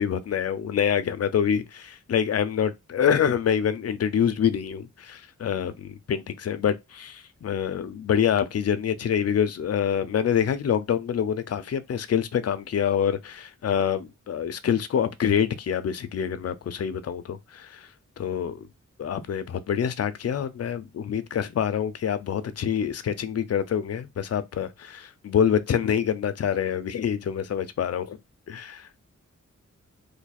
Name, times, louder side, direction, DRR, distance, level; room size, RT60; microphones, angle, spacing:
voice 1, 0.0-17.9 18.2-18.7 19.0-28.2 28.5-28.8, left 8 dB, 55° left, 0.4 m, -26 dB
2.7 x 2.3 x 4.1 m
wide cardioid pair, 140°, 30 cm